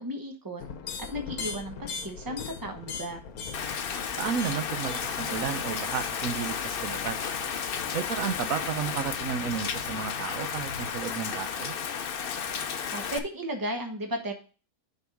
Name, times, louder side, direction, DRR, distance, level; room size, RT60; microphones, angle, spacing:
voice 1, 0.0-3.2 12.7-14.3, equal, 15° right, 5 dB, 1.1 m, -35 dB
sound 1, 0.6-10.9, left 5 dB, 75° left, 1.4 m, -42 dB
Rain, 3.5-13.2, left 7 dB, 50° left, 0.7 m, -33 dB
voice 2, 4.2-7.2 7.9-11.7, right 7 dB, 70° right, 10 dB, 1.1 m, -32 dB
6.7 x 4.7 x 6.0 m, 0.36 s
omnidirectional pair, 1.6 m